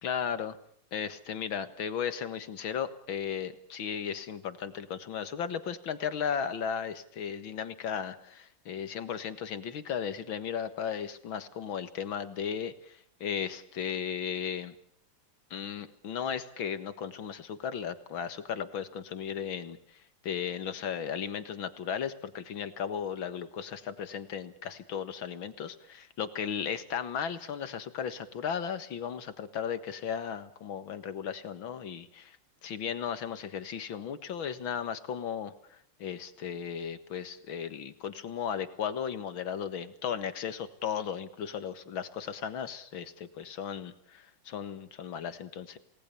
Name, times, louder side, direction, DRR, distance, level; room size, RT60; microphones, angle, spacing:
voice 1, 0.0-0.6 0.9-14.8 15.5-19.8 20.2-32.4 32.6-45.8, left 7 dB, 70° left, 12 dB, 2.3 m, -35 dB
28.0 x 19.0 x 6.9 m, 0.65 s
omnidirectional pair, 2.3 m